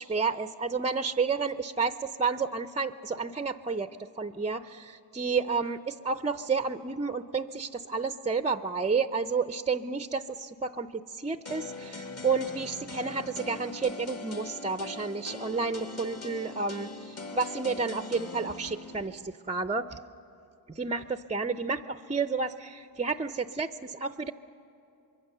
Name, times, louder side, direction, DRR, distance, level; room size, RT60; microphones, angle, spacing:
voice 1, 0.0-20.0 20.7-24.3, right 4 dB, 15° right, 11 dB, 0.5 m, -31 dB
sound 1, 11.4-19.1, left 3 dB, 35° left, 1.5 m, -41 dB
25.0 x 22.5 x 6.7 m, 2.8 s
cardioid pair, 80°, 43 cm